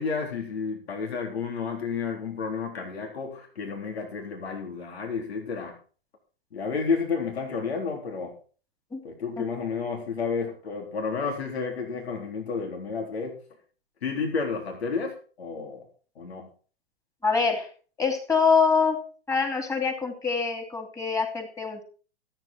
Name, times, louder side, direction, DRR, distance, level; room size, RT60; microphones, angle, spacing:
voice 1, 0.0-5.7 6.5-8.3 9.0-13.3 14.0-15.8 16.2-16.5, left 5 dB, 90° left, 2 dB, 3.8 m, -31 dB
voice 2, 17.2-17.7 18.0-19.0 19.3-21.8, left 5 dB, 10° left, 4 dB, 2.8 m, -24 dB
14.0 x 9.0 x 4.4 m, 0.40 s
hypercardioid pair, 130°, 31 cm